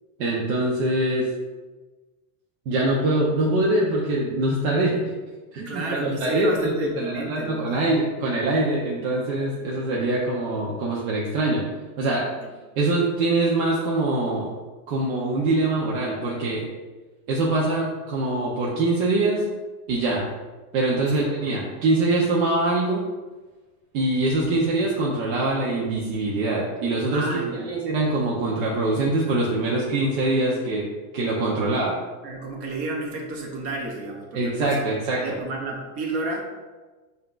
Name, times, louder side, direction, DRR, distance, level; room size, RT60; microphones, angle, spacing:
voice 1, 0.2-1.3 2.7-5.1 5.5-11.6 12.0-12.2 12.8-14.5 14.9-16.6 17.3-19.5 19.9-20.3 20.7-23.0 23.9-30.8 31.1-31.9 34.3-35.2, right 2 dB, 60° right, -4 dB, 0.9 m, -23 dB
voice 2, 5.7-7.8 21.1-21.2 27.1-27.7 32.2-36.4, right 2 dB, 30° right, 1 dB, 0.7 m, -31 dB
5.6 x 2.7 x 2.5 m, 1.3 s
supercardioid pair, 150°, 48 cm